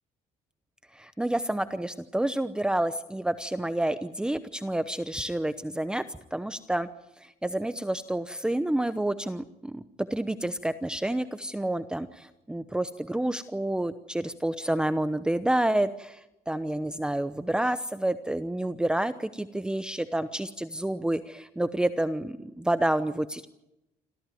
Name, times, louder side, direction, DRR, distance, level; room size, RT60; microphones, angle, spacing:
voice 1, 0.9-6.0 6.3-6.9 7.2-23.5, right 1 dB, 5° right, 11 dB, 0.9 m, -29 dB
27.0 x 15.0 x 9.3 m, 0.90 s
cardioid pair, 115°, 14 cm